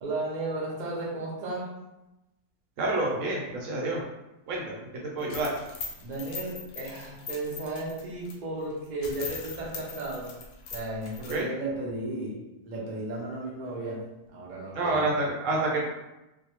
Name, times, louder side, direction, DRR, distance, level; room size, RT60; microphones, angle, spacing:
voice 1, 0.0-1.7 5.2-5.3 6.0-10.3 10.7-14.0 14.3-15.1, right 2 dB, 90° right, -4 dB, 0.4 m, -34 dB
voice 2, 2.8-4.0 4.5-5.5 11.3-11.5 14.7-15.9, right 2 dB, 65° right, -2 dB, 0.8 m, -28 dB
sound 1, 5.2-8.3 8.7-8.8 9.0-11.4, left 4 dB, 75° left, 1.1 m, -40 dB
2.6 x 2.1 x 2.9 m, 0.95 s
omnidirectional pair, 1.7 m